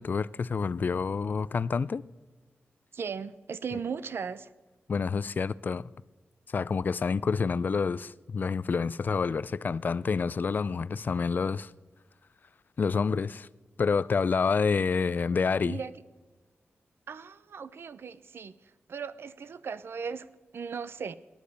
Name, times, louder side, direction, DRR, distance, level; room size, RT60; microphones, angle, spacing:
voice 1, 0.0-2.0 4.9-5.9 6.5-11.7 12.8-13.5 13.8-15.8, left 5 dB, 45° left, 0.4 m, -28 dB
voice 2, 2.9-4.5 15.0-15.1 15.6-15.9 17.1-18.5 18.9-20.3 20.5-21.2, right 6 dB, 70° right, 0.6 m, -37 dB
18.0 x 10.5 x 6.8 m
wide cardioid pair, 140°, 4 cm